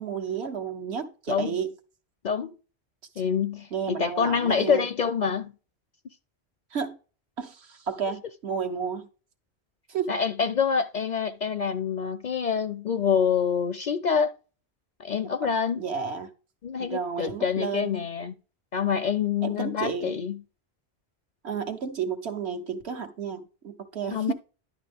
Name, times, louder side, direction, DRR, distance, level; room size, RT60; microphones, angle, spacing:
voice 1, 0.0-1.7 3.7-4.9 6.7-7.0 7.4-9.1 9.9-10.2 15.7-16.3 16.8-17.9 19.4-20.1 21.4-24.3, right 6 dB, 80° right, 1.4 m, -32 dB
voice 2, 3.2-5.5 10.1-14.3 15.0-15.8 16.6-18.3 18.7-20.4 24.1-24.3, left 7 dB, 55° left, 0.5 m, -26 dB
11.0 x 6.0 x 3.4 m
omnidirectional pair, 1.1 m